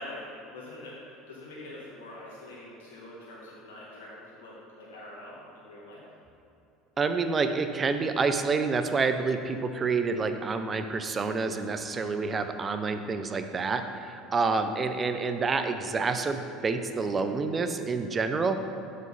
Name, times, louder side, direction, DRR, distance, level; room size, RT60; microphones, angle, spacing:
voice 1, 0.0-6.0, left 1 dB, 85° left, -6 dB, 1.7 m, -44 dB
voice 2, 7.0-18.6, right 4 dB, 30° right, 8 dB, 0.7 m, -28 dB
7.7 x 5.3 x 5.5 m, 2.8 s
hypercardioid pair, 80°, 0 cm